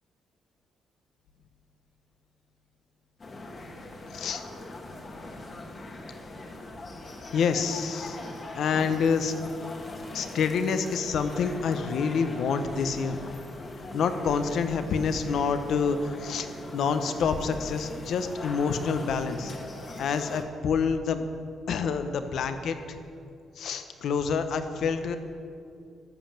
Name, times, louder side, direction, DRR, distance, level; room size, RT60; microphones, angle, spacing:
sound 1, 3.2-20.4, left 2 dB, 35° left, 1.4 m, -41 dB
voice 1, 7.3-8.2 8.5-9.3 10.1-13.2 13.9-16.5 16.7-19.5 20.0-21.3 21.7-22.8 23.6-25.2, left 5 dB, 70° left, 9 dB, 0.8 m, -27 dB
13.0 x 5.4 x 7.3 m, 2.5 s
cardioid pair, 90°, 0 cm